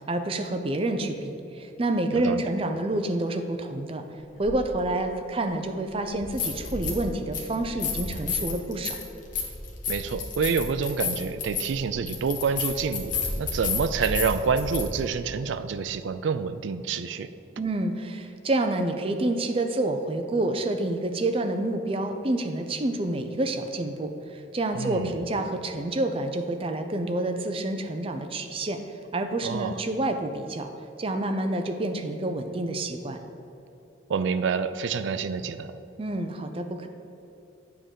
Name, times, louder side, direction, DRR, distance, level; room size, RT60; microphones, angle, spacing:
voice 1, 0.1-4.0 4.4-9.0 17.6-28.8 29.1-30.7 31.0-33.2 36.0-36.9, right 2 dB, 30° right, 6 dB, 0.5 m, -28 dB
voice 2, 2.1-2.4 9.9-13.1 13.4-17.3 24.7-25.2 29.4-29.8 34.1-35.8, right 5 dB, 80° right, 11 dB, 0.4 m, -27 dB
sound 1, 4.4-4.6 6.1-7.1 7.3-14.8, left 5 dB, 45° left, 1.2 m, -31 dB
8.6 x 3.8 x 6.8 m, 2.8 s
head